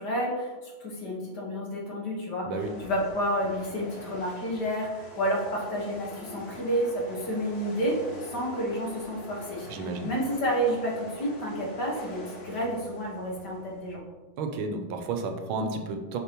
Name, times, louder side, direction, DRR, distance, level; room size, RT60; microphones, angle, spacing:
voice 1, 0.0-2.5 2.8-9.7 10.0-14.0, equal, 55° left, -3 dB, 1.9 m, -30 dB
sound 1, 2.6-14.0, left 1 dB, 80° left, 2.1 m, -44 dB
voice 2, 9.7-10.1 14.4-16.2, right 3 dB, 80° right, 5 dB, 1.5 m, -32 dB
6.7 x 5.8 x 3.0 m, 1.2 s
omnidirectional pair, 2.3 m